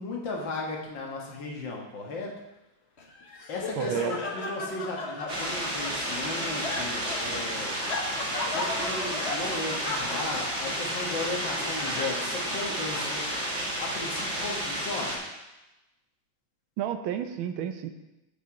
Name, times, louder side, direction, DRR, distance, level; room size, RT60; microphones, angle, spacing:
voice 1, 0.0-2.3 3.5-7.8 8.5-13.3 13.8-15.2, left 3 dB, 70° left, -1 dB, 2.2 m, -36 dB
Laughter, 3.0-13.5, left 3 dB, 40° left, 1.0 m, -37 dB
voice 2, 3.8-4.1 16.8-17.9, right 9 dB, 85° right, 9 dB, 1.5 m, -31 dB
sound 1, 5.3-15.2, equal, 40° right, 2.3 m, -31 dB
8.5 x 6.7 x 5.1 m, 1.0 s
omnidirectional pair, 2.2 m